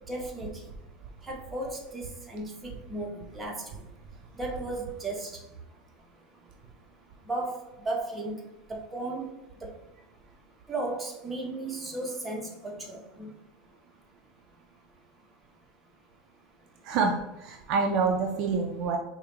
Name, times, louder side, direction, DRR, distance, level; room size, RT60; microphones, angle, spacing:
voice 1, 0.1-0.5 1.3-3.6 4.4-5.3 7.3-7.5 7.8-8.3 8.7-9.3 9.6-9.7 10.7-13.3, right 2 dB, 15° right, -1 dB, 0.8 m, -35 dB
voice 2, 16.8-19.0, right 4 dB, 50° right, 2 dB, 0.5 m, -27 dB
4.8 x 2.2 x 2.9 m, 0.89 s
supercardioid pair, 125°, 0 cm